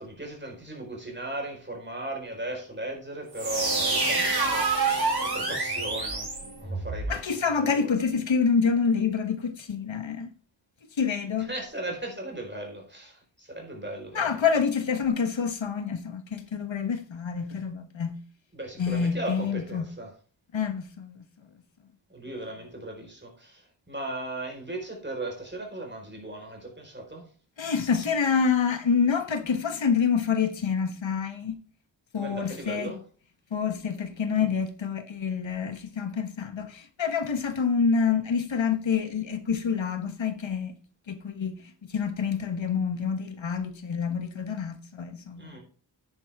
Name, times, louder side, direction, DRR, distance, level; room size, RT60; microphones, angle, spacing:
voice 1, 0.0-8.0 11.5-14.4 18.5-20.1 22.1-27.3 32.1-33.0 45.4-45.6, right 1 dB, 25° right, 4.6 m, -37 dB
sound 1, 3.3-7.1, right 3 dB, 55° right, 5.2 m, -27 dB
voice 2, 7.1-10.3 11.0-11.5 14.1-18.2 18.8-19.9 20.5-21.2 27.6-31.5 32.1-32.9 33.5-40.7 41.1-41.6 41.9-45.6, left 6 dB, 80° left, 1.3 m, -27 dB
9.9 x 9.6 x 3.6 m
wide cardioid pair, 80°, 45 cm